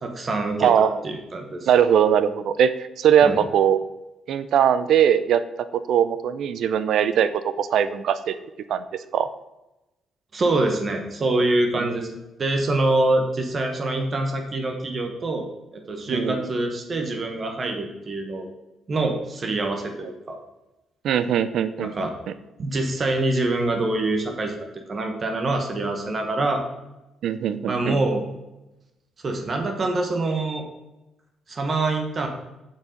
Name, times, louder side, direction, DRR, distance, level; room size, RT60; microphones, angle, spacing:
voice 1, 0.0-0.7 1.0-1.7 3.2-3.4 10.3-12.1 12.4-15.5 15.7-18.5 18.9-20.4 21.8-22.1 22.6-26.6 27.7-28.2 29.2-30.6 31.5-32.3, right 2 dB, 40° right, 4 dB, 1.1 m, -25 dB
voice 2, 0.6-1.0 1.7-3.8 4.3-5.4 5.7-8.4 8.7-8.8 9.1-9.3 11.8-11.9 16.1-16.5 21.0-21.9 27.2-28.0, right 8 dB, 70° right, 13 dB, 0.4 m, -20 dB
6.8 x 4.7 x 5.1 m, 0.98 s
cardioid pair, 90°, 0 cm